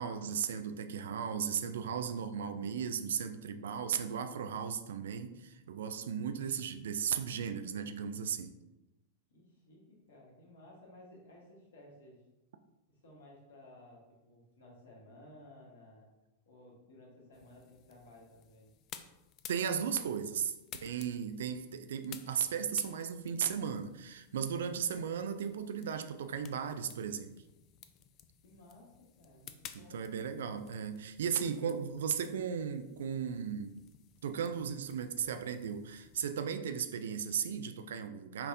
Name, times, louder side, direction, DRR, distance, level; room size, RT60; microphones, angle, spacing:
voice 1, 0.0-8.5 19.5-20.5 20.8-27.3 29.9-33.7 34.2-38.5, right 7 dB, 60° right, 9 dB, 0.3 m, -36 dB
voice 2, 9.3-12.2 12.9-16.1 16.4-18.7 28.4-30.0, left 1 dB, 60° left, -2 dB, 1.4 m, -57 dB
sound 1, 17.3-36.3, left 10 dB, 35° left, 0.3 m, -55 dB
5.6 x 3.3 x 2.6 m, 0.99 s
figure-of-eight pair, 90°, 0 cm